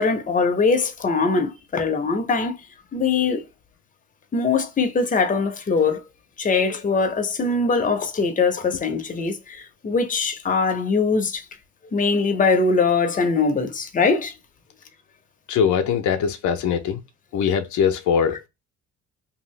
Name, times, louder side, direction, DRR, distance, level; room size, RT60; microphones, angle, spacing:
voice 1, 0.0-2.6 2.9-3.4 4.3-6.0 6.4-11.4 11.9-14.3, left 4 dB, 25° left, 0.7 m, -22 dB
voice 2, 15.5-17.0 17.3-18.5, left 7 dB, 70° left, 0.6 m, -22 dB
2.7 x 2.4 x 3.1 m
cardioid pair, 90°, 30 cm